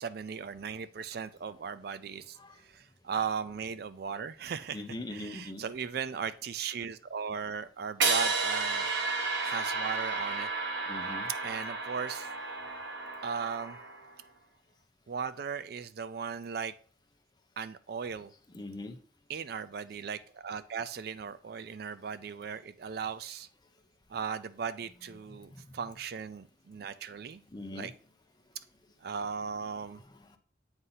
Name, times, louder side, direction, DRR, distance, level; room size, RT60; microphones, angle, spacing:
voice 1, 0.0-2.4 2.6-4.8 5.1-8.9 9.4-10.5 11.4-12.3 13.2-13.8 15.1-16.7 17.6-18.3 19.3-23.5 24.1-27.4 27.7-27.9 29.0-30.0, right 6 dB, 55° right, 0.4 m, -37 dB
voice 2, 4.7-5.6 10.9-11.3 18.5-19.0 25.5-25.6 27.5-27.9 29.9-30.4, left 1 dB, 25° left, 0.6 m, -42 dB
sound 1, 8.0-14.1, right 3 dB, 80° right, 1.1 m, -32 dB
7.9 x 2.7 x 5.6 m
head